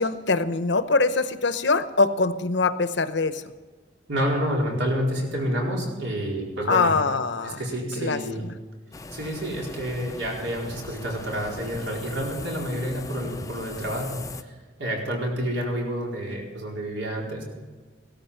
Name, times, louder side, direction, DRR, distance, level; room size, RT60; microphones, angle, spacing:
voice 1, 0.0-3.4 6.7-7.6 8.0-8.2, left 3 dB, 65° left, 12 dB, 0.8 m, -23 dB
voice 2, 4.1-7.0 7.4-8.5 9.1-17.4, equal, 75° right, -2 dB, 4.4 m, -29 dB
sound 1, 8.9-14.4, left 3 dB, 15° left, 0.5 m, -39 dB
16.5 x 13.0 x 5.7 m, 1.4 s
head